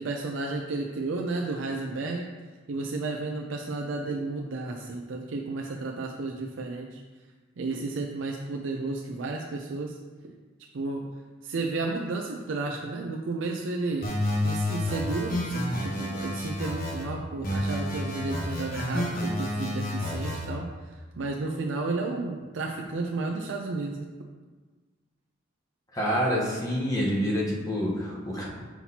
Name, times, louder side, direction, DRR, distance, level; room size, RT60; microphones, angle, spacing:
voice 1, 0.0-2.3 2.7-7.0 7.6-10.0 10.2-10.3 10.7-11.1 11.4-14.1 14.4-24.1, right 3 dB, 75° right, 1 dB, 0.5 m, -32 dB
sound 1, 14.0-17.0 17.4-20.5, left 1 dB, 50° left, 1.3 m, -30 dB
voice 2, 25.9-28.5, equal, 20° left, -4 dB, 1.0 m, -27 dB
5.8 x 5.7 x 2.8 m, 1.4 s
head